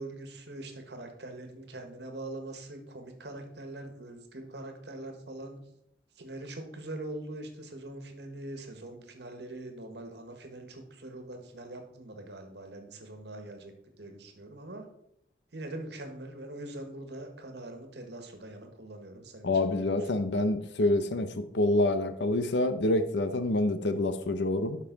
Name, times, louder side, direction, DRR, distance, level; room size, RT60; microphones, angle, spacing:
voice 1, 0.0-5.6 6.2-14.9 15.5-20.3, right 1 dB, 75° right, 5 dB, 1.5 m, -43 dB
voice 2, 19.4-21.3 21.5-24.8, left 2 dB, 85° left, 10 dB, 0.7 m, -27 dB
12.0 x 5.5 x 4.0 m, 0.75 s
head